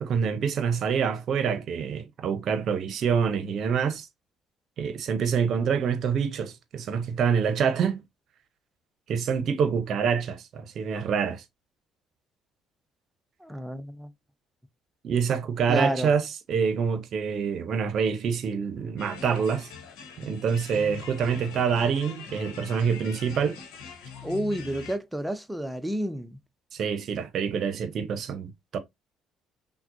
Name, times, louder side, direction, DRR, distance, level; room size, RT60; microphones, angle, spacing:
voice 1, 0.0-4.1 4.8-8.0 9.1-11.4 15.0-16.2 16.5-19.7 20.2-23.6 26.7-28.8, right 6 dB, 55° right, 0.8 m, -26 dB
voice 2, 13.4-14.1 15.7-16.1 24.2-26.4, equal, 5° right, 0.8 m, -30 dB
sound 1, 19.0-25.0, left 6 dB, 70° left, 1.1 m, -43 dB
5.8 x 2.3 x 2.7 m
figure-of-eight pair, 50°, 0 cm